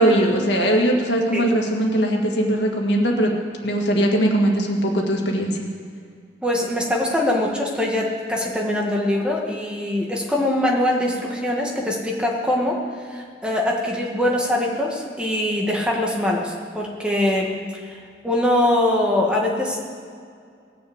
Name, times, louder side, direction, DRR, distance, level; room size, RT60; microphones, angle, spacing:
voice 1, 0.0-3.3 3.6-5.7, right 1 dB, 75° left, 0 dB, 2.0 m, -20 dB
voice 2, 6.4-18.0 18.2-19.9, left 1 dB, 5° right, -1 dB, 1.7 m, -23 dB
18.5 x 6.8 x 8.0 m, 2.2 s
head